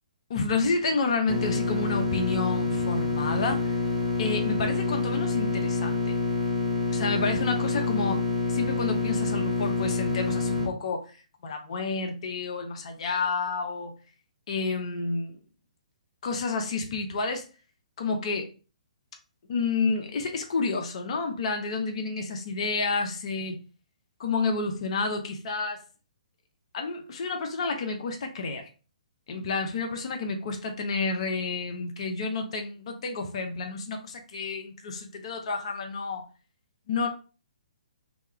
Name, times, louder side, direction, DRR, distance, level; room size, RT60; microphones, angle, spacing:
voice 1, 0.3-3.8 4.2-6.2 6.9-13.9 14.5-15.4 16.2-17.5 18.0-18.5 19.5-23.6 24.2-25.8 26.7-28.7 29.3-36.2 36.9-37.1, left 4 dB, 50° left, 0.5 m, -30 dB
sound 1, 1.3-10.7, left 3 dB, 5° right, 0.9 m, -27 dB
2.2 x 2.1 x 3.1 m
figure-of-eight pair, 130°, 4 cm